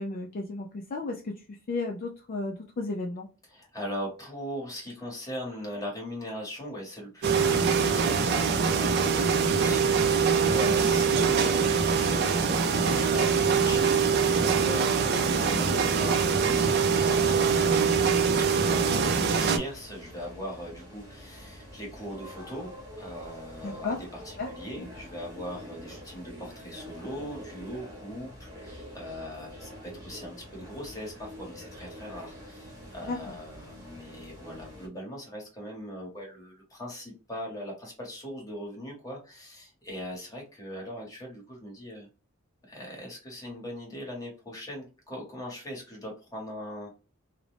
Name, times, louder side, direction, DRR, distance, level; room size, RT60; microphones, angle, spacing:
voice 1, 0.0-3.3 10.4-10.9 23.6-24.0 24.4-24.5 24.8-24.9 33.0-33.3, left 3 dB, 45° left, 1 dB, 0.4 m, -34 dB
voice 2, 3.5-18.0 18.6-42.1 42.7-46.9, equal, 15° left, -1 dB, 1.1 m, -40 dB
sound 1, 7.2-19.6, right 5 dB, 50° right, 0.4 m, -23 dB
sound 2, 18.8-34.9, equal, 15° right, 1.0 m, -46 dB
2.5 x 2.1 x 3.1 m, 0.34 s
head